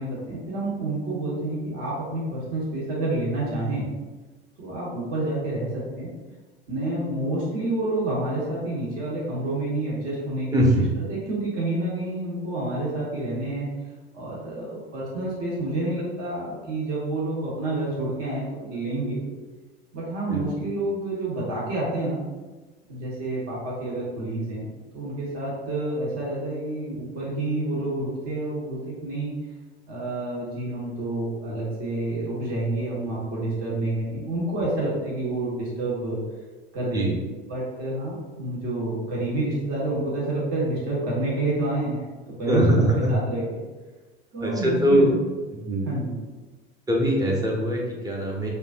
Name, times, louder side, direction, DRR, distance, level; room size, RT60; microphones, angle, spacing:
voice 1, 0.0-3.8 4.6-6.1 6.7-10.8 11.1-13.7 14.1-19.2 19.9-22.2 22.9-24.7 24.9-29.3 29.9-36.2 36.7-37.2 37.5-42.0 42.4-43.6 44.3-45.3 45.8-46.1, right 2 dB, 45° right, -6 dB, 1.5 m, -28 dB
voice 2, 10.5-10.9 20.3-20.4 36.9-37.2 42.5-43.1 44.4-45.1 45.5-45.9 46.9-48.5, equal, 10° right, -2 dB, 0.8 m, -22 dB
4.5 x 2.7 x 2.5 m, 1.3 s
figure-of-eight pair, 75°, 33 cm